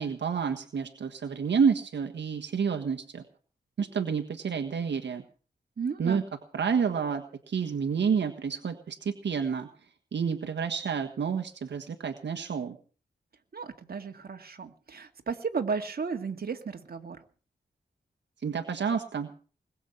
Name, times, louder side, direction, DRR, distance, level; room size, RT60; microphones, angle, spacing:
voice 1, 0.0-3.2 3.8-5.2 6.0-6.2 6.5-9.7 10.1-12.8 18.4-19.3, right 6 dB, 75° right, 5 dB, 1.5 m, -29 dB
voice 2, 5.8-6.2 13.5-17.2, right 5 dB, 55° right, 5 dB, 2.0 m, -34 dB
21.0 x 7.3 x 8.7 m, 0.41 s
wide cardioid pair, 115°, 18 cm